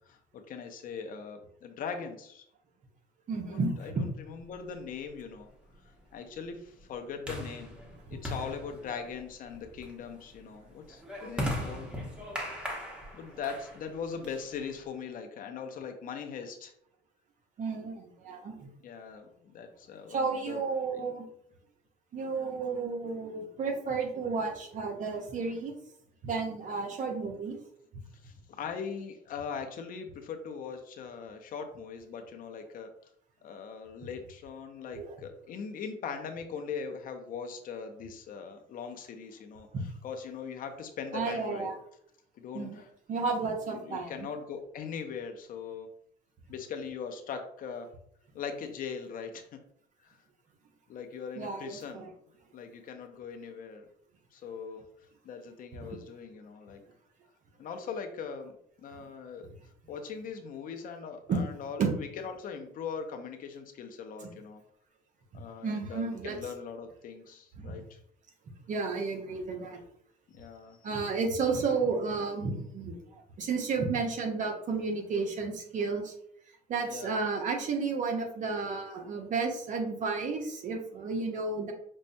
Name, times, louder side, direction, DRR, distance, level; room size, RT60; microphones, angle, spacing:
voice 1, 0.1-2.4 3.5-5.5 6.1-11.9 13.1-16.7 18.8-20.6 20.9-21.1 28.2-32.9 33.4-39.7 40.0-41.7 42.4-42.9 43.7-45.9 46.5-47.9 48.3-49.5 50.0-50.2 50.9-52.1 52.5-53.8 54.3-54.8 55.2-56.8 57.6-58.5 58.8-59.5 59.9-64.6 65.3-68.0 70.3-70.8 76.8-77.2, left 6 dB, 55° left, 5 dB, 0.6 m, -40 dB
voice 2, 3.3-4.1 17.6-18.7 20.1-21.2 22.1-25.7 26.2-27.6 34.9-35.1 39.7-39.8 41.1-41.8 42.5-42.8 43.1-44.3 51.4-52.1 55.8-56.0 61.3-61.4 61.8-61.9 64.2-64.4 65.6-66.4 67.6-67.8 68.7-69.8 70.8-76.1 76.7-81.7, right 4 dB, 50° right, 3 dB, 0.8 m, -32 dB
sound 1, 4.6-14.9, equal, 5° right, 1.0 m, -40 dB
5.3 x 2.1 x 2.6 m, 0.68 s
cardioid pair, 110°, 17 cm